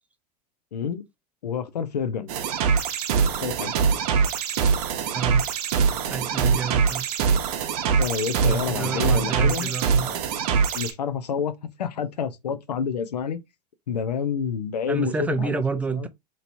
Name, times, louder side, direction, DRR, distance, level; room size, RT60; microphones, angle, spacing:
voice 1, 0.7-1.0 1.4-2.3 3.4-3.7 7.9-9.7 10.0-10.2 10.7-13.4 13.9-15.6 15.9-16.1, left 7 dB, 85° left, 0.6 m, -28 dB
sound 1, 2.3-10.9, right 6 dB, 65° right, 0.7 m, -23 dB
voice 2, 5.1-5.5 6.0-7.1 8.4-10.1 14.9-16.1, right 5 dB, 5° right, 0.4 m, -29 dB
3.0 x 2.9 x 2.6 m
hypercardioid pair, 90°, 20 cm